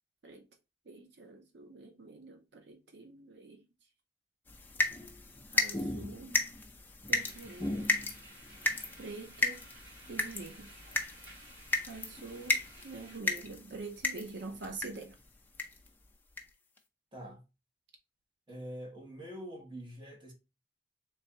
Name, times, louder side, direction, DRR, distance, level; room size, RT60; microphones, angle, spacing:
voice 1, 0.9-3.6 5.5-6.4 7.1-7.9 9.0-9.7 10.1-10.9 11.9-12.6 12.8-15.2, right 3 dB, 80° right, 0.6 m, -45 dB
sound 1, 4.5-15.1 15.5-15.9 16.4-16.5 16.8-16.9, left 2 dB, 10° left, 0.4 m, -35 dB
sound 2, 7.1-13.2, right 2 dB, 50° right, 2.1 m, -56 dB
voice 2, 17.1-17.4 18.5-20.3, equal, 25° right, 1.0 m, -45 dB
3.3 x 3.3 x 2.8 m
head